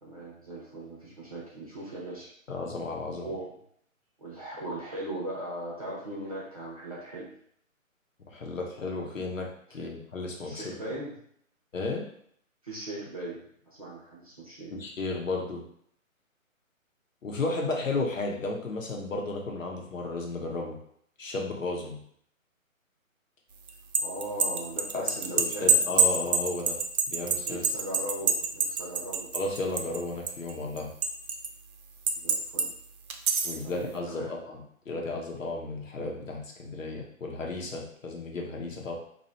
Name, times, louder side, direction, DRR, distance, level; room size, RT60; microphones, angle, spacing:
voice 1, 0.0-2.3 3.2-3.5 4.2-7.3 9.8-9.9 10.4-11.1 12.6-14.7 17.6-17.8 24.0-25.8 27.5-29.3 32.1-32.7 33.6-34.3, right 1 dB, 25° right, -6 dB, 0.7 m, -39 dB
voice 2, 2.5-3.3 8.3-10.7 11.7-12.0 14.7-15.6 17.2-20.8 21.2-22.0 24.9-26.8 27.1-27.6 29.3-30.9 33.4-39.0, left 3 dB, 65° left, 0 dB, 1.0 m, -33 dB
sound 1, 23.7-30.0 30.3-31.5 32.1-32.7 33.1-33.6, right 5 dB, 90° right, 0.7 m, -26 dB
2.8 x 2.6 x 4.2 m, 0.66 s
hypercardioid pair, 175°, 41 cm